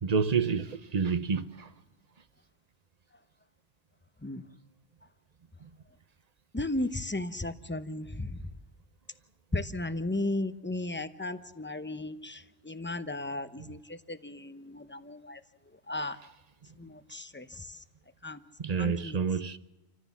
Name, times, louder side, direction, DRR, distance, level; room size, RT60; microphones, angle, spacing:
voice 1, 0.0-1.7 13.6-13.7 18.6-19.6, right 5 dB, 40° right, 0.8 m, -29 dB
voice 2, 6.5-8.4 9.5-15.4 15.9-16.2 16.8-17.8 18.2-18.4 18.8-19.2, left 2 dB, 10° left, 0.8 m, -35 dB
29.0 x 14.5 x 7.3 m
omnidirectional pair, 1.1 m